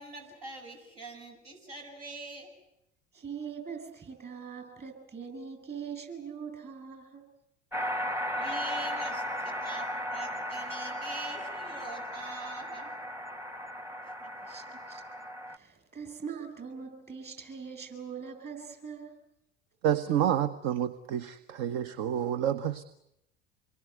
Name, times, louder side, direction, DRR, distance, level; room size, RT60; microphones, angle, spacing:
voice 1, 0.0-2.5 8.3-12.9 14.2-14.3, right 2 dB, 75° right, 7.7 m, -44 dB
voice 2, 3.1-7.3 14.4-15.0 15.5-19.2, right 6 dB, 35° right, 7.8 m, -42 dB
sound 1, 7.7-15.6, equal, 10° right, 1.1 m, -36 dB
voice 3, 19.8-22.8, right 10 dB, 55° right, 1.1 m, -29 dB
27.0 x 22.0 x 9.4 m
figure-of-eight pair, 65°, 30 cm